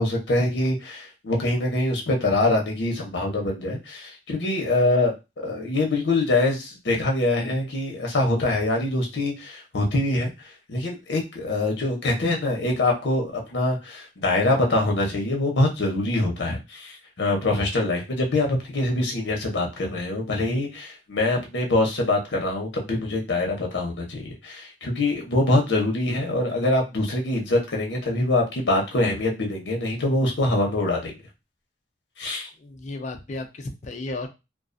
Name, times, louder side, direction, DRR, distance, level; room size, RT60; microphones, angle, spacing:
voice 1, 0.0-31.2 32.2-32.5, left 2 dB, 75° left, 1 dB, 0.7 m, -24 dB
voice 2, 32.6-34.3, left 2 dB, 40° left, 5 dB, 0.4 m, -34 dB
2.3 x 2.2 x 2.5 m, 0.26 s
head